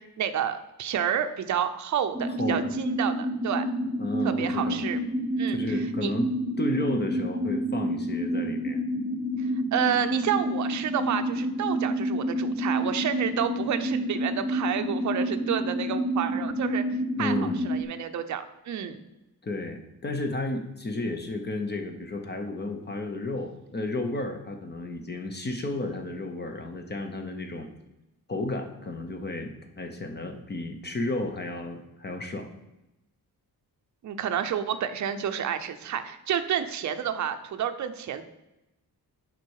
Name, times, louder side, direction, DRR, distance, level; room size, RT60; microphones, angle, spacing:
voice 1, 0.2-3.6 4.2-5.0 5.4-6.1 9.7-16.8 17.2-19.0 34.0-38.2, right 9 dB, 50° right, 8 dB, 0.6 m, -30 dB
sound 1, 2.1-17.8, equal, ahead, 0.9 m, -29 dB
voice 2, 2.4-2.7 4.0-4.8 5.5-6.3 6.6-8.8 17.2-17.6 19.4-27.7 28.3-32.5, left 2 dB, 25° left, 5 dB, 0.7 m, -32 dB
7.6 x 5.3 x 4.7 m, 0.94 s
wide cardioid pair, 175°, 37 cm